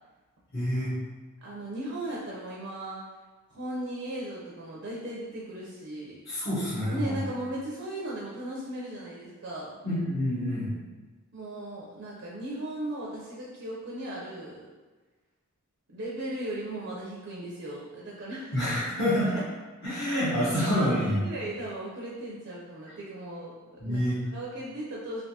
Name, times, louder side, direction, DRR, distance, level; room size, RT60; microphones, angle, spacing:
voice 1, 0.5-0.9 6.3-7.1 9.8-10.7 18.5-19.3 19.8-21.2 23.8-24.2, equal, 45° left, -14 dB, 1.1 m, -27 dB
voice 2, 1.4-3.0 3.5-6.2 6.9-9.8 11.3-14.7 15.9-18.5 20.4-23.5 23.8-24.0 24.3-25.2, right 1 dB, 55° right, -5 dB, 0.5 m, -37 dB
3.4 x 2.6 x 2.7 m, 1.3 s
head